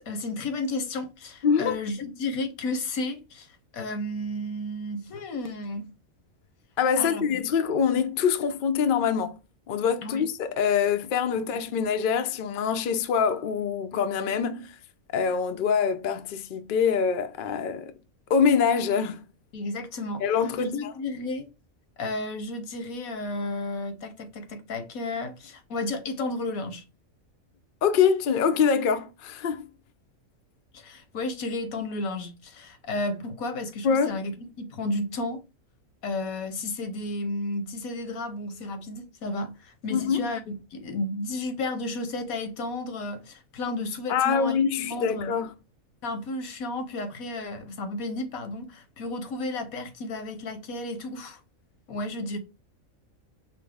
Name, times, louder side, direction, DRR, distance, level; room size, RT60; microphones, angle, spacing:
voice 1, 0.0-5.9 7.0-7.2 10.0-10.3 11.4-11.5 19.5-20.3 20.6-21.5 22.0-26.8 30.7-35.4 36.0-45.3 46.0-51.4 51.9-52.4, left 2 dB, 80° left, 1.2 m, -33 dB
voice 2, 1.4-1.8 6.8-9.4 9.7-14.8 15.1-17.9 18.3-19.2 20.2-20.7 27.8-29.7 33.8-34.1 39.9-40.3 44.1-45.5, left 6 dB, 65° left, 0.5 m, -24 dB
5.8 x 2.0 x 3.4 m
omnidirectional pair, 1.5 m